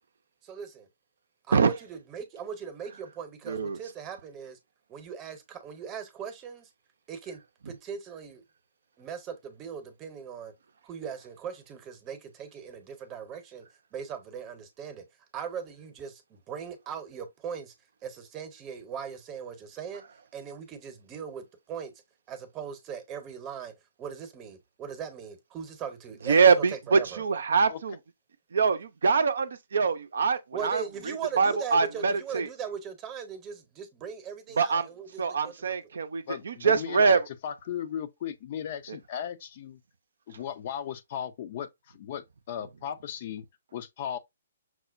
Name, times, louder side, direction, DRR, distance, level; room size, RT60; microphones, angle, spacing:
voice 1, 0.4-0.9 1.5-4.6 4.9-6.7 7.1-8.4 9.0-10.5 10.8-13.7 13.9-15.0 15.3-17.7 18.0-20.0 20.3-21.9 22.3-27.2 30.5-35.7, right 7 dB, 25° right, 0.8 m, -39 dB
voice 2, 3.5-3.8 26.3-27.9 28.5-32.5 34.6-34.9 35.2-37.2, right 5 dB, 65° right, 0.5 m, -24 dB
voice 3, 36.3-39.8 40.3-41.7 41.9-43.4 43.7-44.2, left 9 dB, 45° left, 0.4 m, -36 dB
5.9 x 2.1 x 2.5 m
figure-of-eight pair, 130°, 0 cm